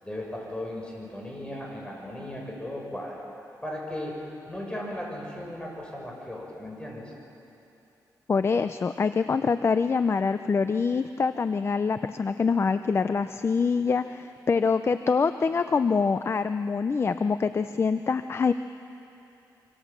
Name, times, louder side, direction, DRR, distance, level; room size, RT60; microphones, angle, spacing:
voice 1, 0.0-3.2 3.6-4.1 4.5-7.0, left 1 dB, 15° left, -2 dB, 7.2 m, -36 dB
voice 2, 8.3-18.5, left 5 dB, 35° left, 11 dB, 0.6 m, -25 dB
25.0 x 25.0 x 7.5 m, 2.8 s
cardioid pair, 105°, 7 cm